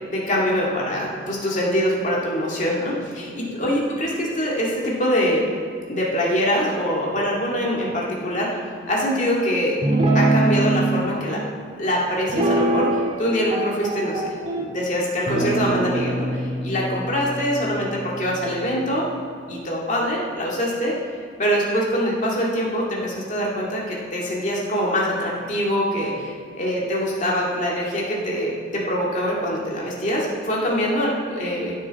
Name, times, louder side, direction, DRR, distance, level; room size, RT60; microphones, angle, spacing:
voice 1, 0.1-5.4 5.9-8.6 8.9-9.7 10.1-11.4 11.8-14.2 14.6-19.0 19.5-20.9 21.4-31.8, equal, 45° left, -3 dB, 2.1 m, -24 dB
Guitar, 9.8-11.0 12.3-13.2 13.5-14.7 15.3-18.7, right 2 dB, 35° right, 1.6 m, -23 dB
15.0 x 6.6 x 4.1 m, 2.3 s
head